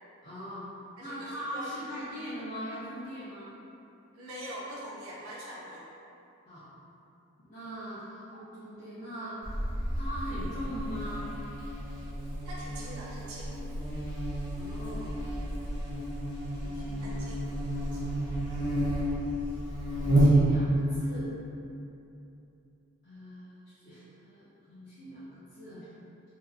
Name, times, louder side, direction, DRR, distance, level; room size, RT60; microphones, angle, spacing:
voice 1, 0.2-0.6 1.0-3.5 6.5-6.6 7.4-9.6 9.9-11.3 14.5-15.2 16.6-17.2 19.9-21.3 23.0-25.9, equal, 35° left, -14 dB, 0.5 m, -41 dB
voice 2, 1.0-1.7 2.0-2.1 4.1-5.9 12.4-13.5 17.0-17.5 17.8-18.3, equal, 85° right, -6 dB, 0.5 m, -43 dB
Buzz, 9.4-20.8, right 1 dB, 20° right, 0.5 m, -30 dB
2.7 x 2.3 x 2.3 m, 2.7 s
head